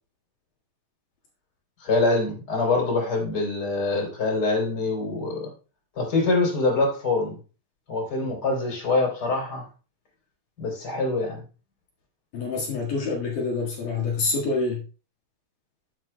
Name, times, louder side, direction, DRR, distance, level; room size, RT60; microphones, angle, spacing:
voice 1, 1.8-5.5 6.0-7.4 7.9-9.6 10.6-11.4, left 3 dB, 25° left, -1 dB, 3.7 m, -24 dB
voice 2, 12.3-14.8, left 3 dB, 60° left, -2 dB, 3.1 m, -26 dB
15.0 x 7.4 x 2.2 m, 0.35 s
omnidirectional pair, 4.5 m